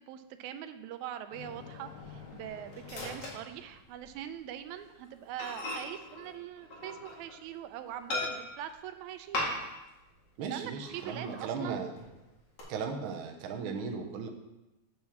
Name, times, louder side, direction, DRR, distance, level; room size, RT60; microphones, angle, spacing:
voice 1, 0.1-9.5 10.5-11.8, right 10 dB, 85° right, 9 dB, 1.9 m, -42 dB
Microwave oven, 1.3-4.2 4.5-4.7 5.0-5.1 5.4-7.5 8.1-8.7 9.3-9.9 10.2-10.3 10.8-11.5 12.0-12.6, left 2 dB, 75° left, 3.3 m, -39 dB
voice 2, 10.4-11.9 12.7-14.3, right 5 dB, 65° right, 3 dB, 1.3 m, -36 dB
7.2 x 4.8 x 7.0 m, 0.99 s
omnidirectional pair, 3.3 m